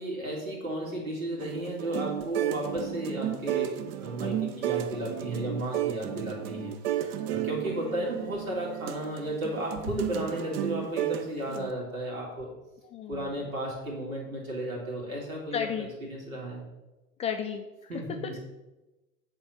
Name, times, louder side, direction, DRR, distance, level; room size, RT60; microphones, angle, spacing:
voice 1, 0.0-3.7 4.0-12.5 13.1-15.7 16.1-16.6 17.9-18.4, right 1 dB, 85° right, -3 dB, 2.8 m, -34 dB
sound 1, 1.4-11.7, right 12 dB, 50° right, 0.6 m, -33 dB
voice 2, 12.8-13.5 15.5-15.9 17.2-17.9 18.2-18.4, left 8 dB, 20° left, 5 dB, 0.3 m, -34 dB
7.8 x 3.7 x 5.8 m, 1.1 s
hypercardioid pair, 90°, 40 cm